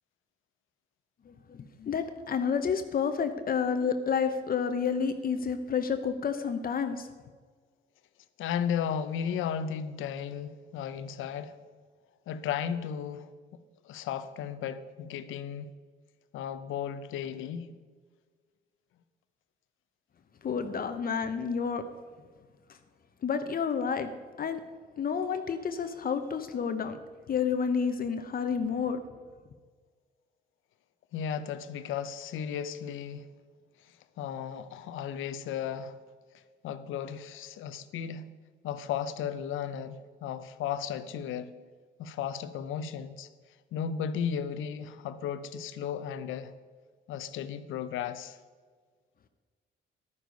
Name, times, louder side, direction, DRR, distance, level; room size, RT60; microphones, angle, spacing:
voice 1, 1.3-7.1 20.4-21.8 23.2-24.1 24.4-24.6 25.0-27.0 27.3-29.0, left 6 dB, 45° left, 0.8 m, -30 dB
voice 2, 8.4-11.5 12.3-13.3 13.8-15.7 16.3-17.7 31.1-33.3 34.2-36.0 36.6-38.3 38.6-41.5 42.0-43.3 43.7-46.5 47.1-48.4, left 8 dB, 85° left, 0.7 m, -35 dB
11.0 x 9.5 x 5.2 m
cardioid pair, 90°, 20 cm